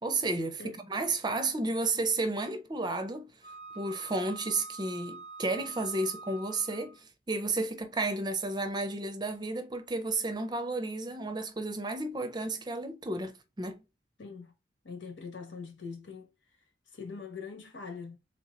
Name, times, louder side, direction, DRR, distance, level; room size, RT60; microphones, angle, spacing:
voice 1, 0.0-3.3 3.7-13.8, right 2 dB, 20° right, 0.5 m, -32 dB
Wind instrument woodwind instrument, 3.4-7.0, right 3 dB, 30° left, 0.6 m, -46 dB
voice 2, 14.2-14.5 14.8-16.3 16.9-18.2, left 5 dB, 80° left, 1.3 m, -42 dB
3.6 x 2.9 x 3.7 m
head